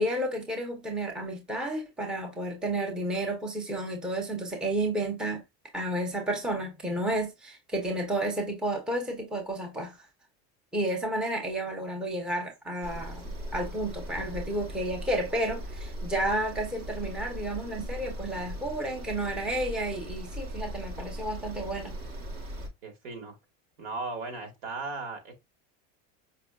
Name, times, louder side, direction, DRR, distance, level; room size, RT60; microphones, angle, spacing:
voice 1, 0.0-5.4 5.7-10.0 10.7-21.9, right 1 dB, ahead, 0.5 m, -31 dB
sound 1, 12.8-22.7, equal, 35° right, 0.8 m, -39 dB
voice 2, 22.8-23.4 23.8-25.3, right 3 dB, 85° right, 1.7 m, -37 dB
5.1 x 2.4 x 2.2 m
supercardioid pair, 155°, 38 cm